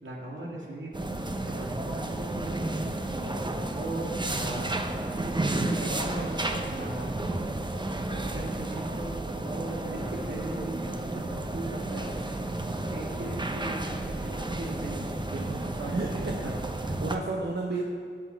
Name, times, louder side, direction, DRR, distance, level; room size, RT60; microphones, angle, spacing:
voice 1, 0.0-0.9 1.5-2.6 3.2-4.7 5.3-7.1 8.0-12.1 12.9-15.1 15.6-16.5, right 1 dB, 75° right, -3 dB, 2.5 m, -38 dB
sound 1, 0.9-17.2, right 2 dB, 25° right, 0.8 m, -32 dB
voice 2, 15.3-16.4 16.9-17.8, right 3 dB, 60° right, 0 dB, 1.0 m, -33 dB
16.5 x 6.2 x 4.6 m, 2.3 s
wide cardioid pair, 95°, 20 cm